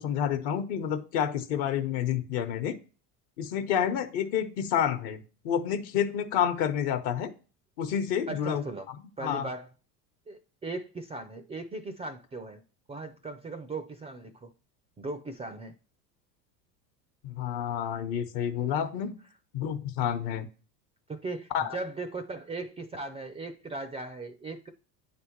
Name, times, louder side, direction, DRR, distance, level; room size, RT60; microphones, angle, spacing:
voice 1, 0.0-2.8 3.4-7.3 7.8-8.6 9.2-9.5 17.2-19.1 19.5-20.5 21.5-21.8, left 9 dB, 55° left, 8 dB, 1.0 m, -29 dB
voice 2, 8.3-8.9 9.2-9.7 10.3-12.6 12.9-14.5 15.0-15.8 21.1-24.7, right 3 dB, 15° right, 9 dB, 0.4 m, -38 dB
9.2 x 3.5 x 3.0 m, 0.36 s
hypercardioid pair, 90°, 48 cm